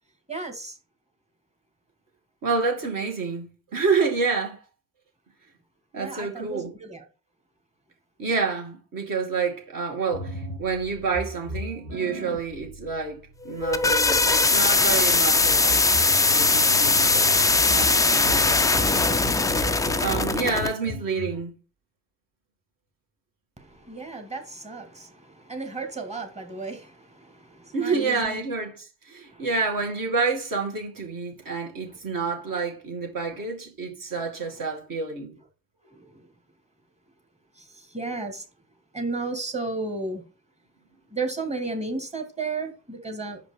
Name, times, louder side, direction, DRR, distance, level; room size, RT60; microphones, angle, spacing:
voice 1, 0.3-0.8 6.0-7.0 23.6-28.4 29.3-29.5 36.0-36.2 37.6-38.4 38.9-40.2 41.1-43.4, right 3 dB, 15° right, 2.0 m, -34 dB
voice 2, 2.4-4.6 5.9-6.7 8.2-15.8 16.3-19.2 20.0-21.5 27.7-35.3, right 4 dB, 40° right, 2.5 m, -28 dB
sound 1, 10.1-21.4, right 1 dB, 80° right, 1.6 m, -37 dB
sound 2, 13.4-20.7, left 3 dB, 10° left, 0.4 m, -20 dB
6.0 x 5.1 x 5.1 m
hypercardioid pair, 55°, 48 cm